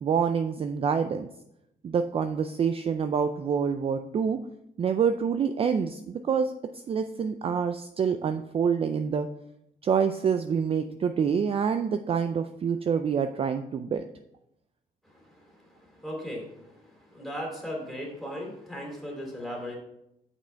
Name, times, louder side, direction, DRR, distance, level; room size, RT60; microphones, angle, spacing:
voice 1, 0.0-1.3 1.8-4.4 4.8-6.5 6.9-9.3 9.8-14.0, right 6 dB, 35° right, 8 dB, 0.4 m, -26 dB
voice 2, 16.0-16.4 17.1-19.7, equal, ahead, -2 dB, 2.8 m, -36 dB
6.8 x 5.9 x 4.4 m, 0.80 s
cardioid pair, 125°, 16 cm